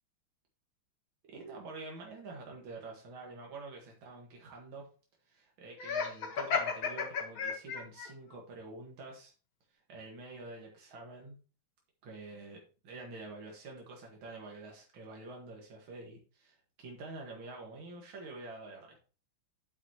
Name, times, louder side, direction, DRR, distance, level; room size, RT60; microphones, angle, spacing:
voice 1, 1.2-4.9 5.3-9.3 9.7-11.4 12.0-19.0, right 3 dB, 80° right, 0 dB, 2.4 m, -47 dB
Laughter, 5.8-8.1, left 5 dB, 85° left, 2.3 m, -33 dB
8.9 x 8.7 x 2.9 m, 0.36 s
omnidirectional pair, 2.2 m